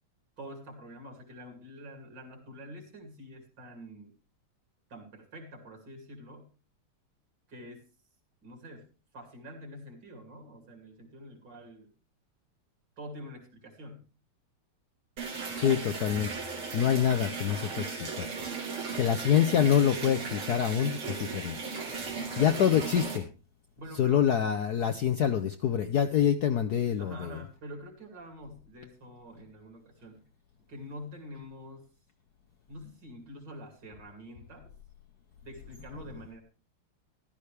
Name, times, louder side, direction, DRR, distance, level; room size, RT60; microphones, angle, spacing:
voice 1, 0.4-4.2 4.9-6.5 7.5-7.9 8.4-8.9 9.1-11.9 13.0-14.1 23.8-24.3 27.0-30.2 30.7-31.9 32.7-34.7 35.4-36.4, equal, 55° right, 3 dB, 3.4 m, -46 dB
sound 1, 15.2-23.2, right 4 dB, 75° right, 3.3 m, -36 dB
voice 2, 15.5-16.4 16.7-18.3 18.9-21.6 22.4-23.3 24.0-27.3, left 9 dB, 65° left, 8 dB, 1.0 m, -26 dB
14.0 x 12.5 x 3.4 m, 0.33 s
omnidirectional pair, 2.4 m